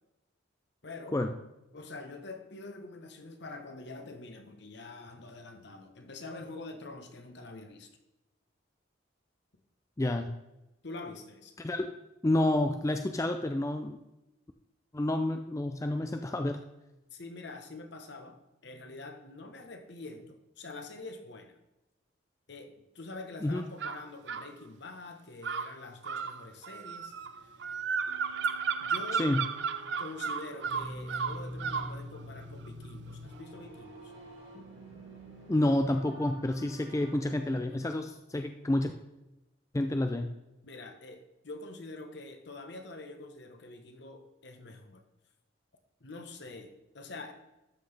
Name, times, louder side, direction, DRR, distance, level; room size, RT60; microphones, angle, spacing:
voice 1, 0.8-1.2 1.7-7.9 10.8-11.5 17.1-21.5 22.5-27.5 28.8-29.3 30.0-34.1 40.6-45.0 46.0-47.3, left 2 dB, 60° left, 6 dB, 1.1 m, -45 dB
voice 2, 10.0-10.3 11.6-11.9 12.2-14.0 14.9-16.6 23.4-23.6 29.2-29.5 35.5-38.9 39.7-40.3, left 1 dB, 15° left, 6 dB, 0.4 m, -29 dB
sound 1, 23.8-24.5 25.4-32.0, right 6 dB, 65° right, 0.5 m, -34 dB
sound 2, 27.1-38.1, equal, 80° right, 2.3 m, -47 dB
12.5 x 6.0 x 3.4 m, 0.96 s
head